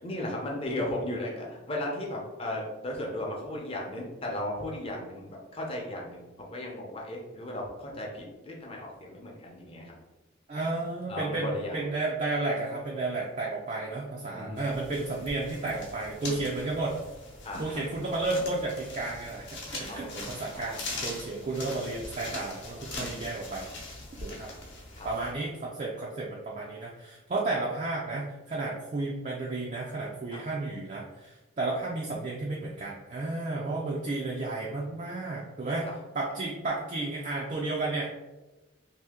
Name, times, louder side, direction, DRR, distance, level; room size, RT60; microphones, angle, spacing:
voice 1, 0.0-9.9 11.1-11.8 14.3-14.7 17.4-17.8 19.9-20.2 20.5-20.7 24.9-25.1, left 1 dB, 30° left, -2 dB, 0.7 m, -36 dB
voice 2, 10.5-17.0 17.6-23.7 24.2-24.5 25.0-35.9 36.1-38.1, right 2 dB, 35° right, -3 dB, 0.4 m, -32 dB
sound 1, 14.6-25.3, left 2 dB, 55° left, 0.9 m, -41 dB
2.8 x 2.7 x 3.6 m, 1.1 s
head